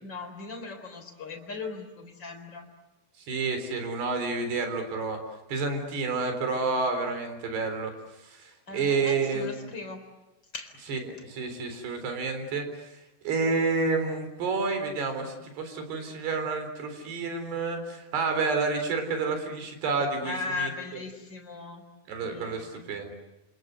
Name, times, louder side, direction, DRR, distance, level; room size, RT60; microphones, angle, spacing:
voice 1, 0.0-2.7 8.7-10.1 10.5-10.7 20.2-21.8 22.2-22.9, left 3 dB, 25° left, 4 dB, 4.2 m, -38 dB
voice 2, 3.3-5.2 5.5-7.9 8.2-9.7 10.9-12.7 13.2-20.7 22.1-23.1, right 4 dB, 70° right, 7 dB, 5.9 m, -29 dB
28.5 x 26.5 x 8.0 m, 1.0 s
omnidirectional pair, 4.9 m